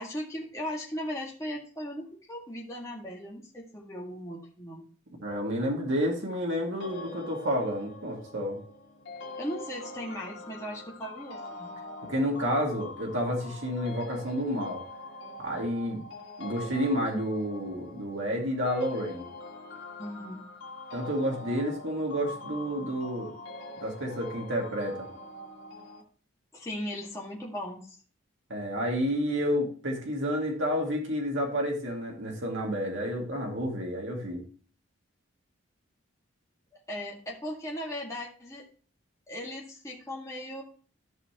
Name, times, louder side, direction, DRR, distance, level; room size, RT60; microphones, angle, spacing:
voice 1, 0.0-4.8 9.4-11.7 20.0-20.4 26.5-28.0 36.9-38.7 39.3-40.6, equal, 15° left, -4 dB, 1.8 m, -37 dB
voice 2, 5.2-8.6 12.1-14.8 15.4-16.0 16.4-19.2 20.9-23.3 23.8-25.1 28.5-34.4, equal, 65° right, -1 dB, 2.3 m, -30 dB
sound 1, 6.8-26.0, left 2 dB, 65° left, 2.0 m, -44 dB
13.5 x 5.6 x 3.0 m, 0.41 s
head